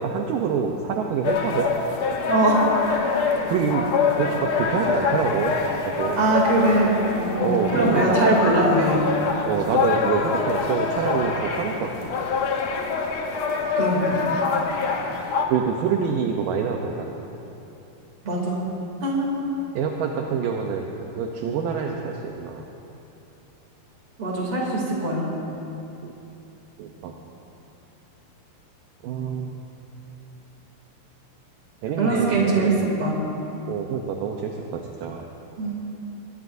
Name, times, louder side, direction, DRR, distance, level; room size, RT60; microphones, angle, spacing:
voice 1, 0.0-1.7 3.5-3.8 4.2-5.5 5.9-6.2 7.4-8.5 9.5-12.1 15.5-17.2 19.7-20.9 21.1-22.6 26.0-26.1 26.8-27.2 29.0-29.6 31.8-32.9 33.7-35.3, right 6 dB, 75° right, 1 dB, 2.1 m, -26 dB
sound 1, 1.2-15.4, left 5 dB, 65° left, 1.7 m, -25 dB
voice 2, 2.3-2.6 6.2-9.0 13.7-14.2 18.2-18.6 19.0-19.4 24.2-25.3 32.0-33.2 35.6-35.7, right 2 dB, 35° right, -3 dB, 3.4 m, -22 dB
22.5 x 19.5 x 2.7 m, 2.9 s
omnidirectional pair, 4.6 m